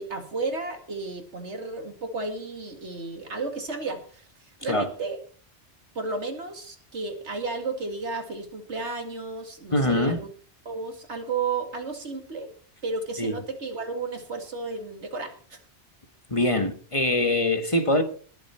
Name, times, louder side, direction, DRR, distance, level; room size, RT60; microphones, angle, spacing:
voice 1, 0.0-5.2 5.9-10.3 10.7-12.5 12.8-15.6, right 3 dB, 85° right, 2.5 m, -33 dB
voice 2, 9.7-10.2 13.2-13.3 16.3-18.0, left 1 dB, 30° left, 1.3 m, -23 dB
20.0 x 7.4 x 4.4 m
omnidirectional pair, 1.1 m